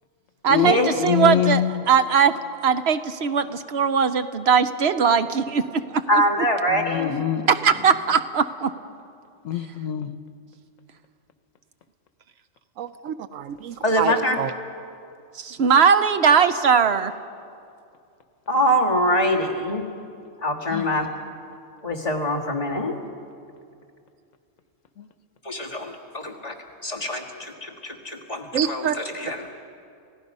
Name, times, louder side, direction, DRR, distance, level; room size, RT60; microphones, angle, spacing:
voice 1, 0.4-6.0 7.5-8.7 15.3-17.1, right 6 dB, 60° right, 10 dB, 0.9 m, -20 dB
voice 2, 1.0-1.7 6.9-7.5 9.4-10.2 20.7-20.8, left 11 dB, 85° left, 10 dB, 1.3 m, -23 dB
voice 3, 6.1-7.1 13.8-14.4 18.5-19.8 20.4-21.1 21.8-23.0 25.4-26.5 26.8-29.6, equal, 30° left, -1 dB, 1.8 m, -24 dB
voice 4, 12.8-14.5 28.5-29.0, right 9 dB, 85° right, 12 dB, 1.0 m, -27 dB
30.0 x 16.5 x 5.4 m, 2.4 s
omnidirectional pair, 1.3 m